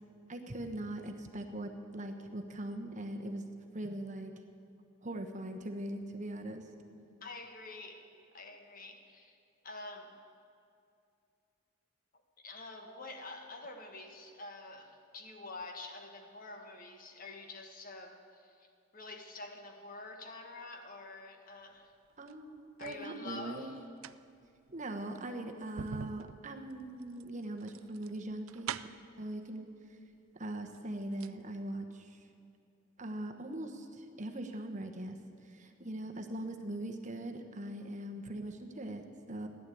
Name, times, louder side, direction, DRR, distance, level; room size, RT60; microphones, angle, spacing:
voice 1, 0.3-3.4 3.7-4.3 5.0-6.6 22.2-23.7 24.7-28.7 29.2-29.7 30.3-32.2 33.0-35.2 35.4-39.5, right 1 dB, 35° right, 5 dB, 1.1 m, -41 dB
voice 2, 7.2-8.1 8.3-9.4 9.6-10.2 12.4-18.7 18.9-21.9 22.8-23.8, left 2 dB, 45° left, 4 dB, 1.5 m, -47 dB
sound 1, 22.1-23.1 23.8-29.2 30.1-30.2 30.6-31.4 31.7-31.8, right 8 dB, 90° right, 0.4 m, -45 dB
15.0 x 11.0 x 8.5 m, 2.5 s
head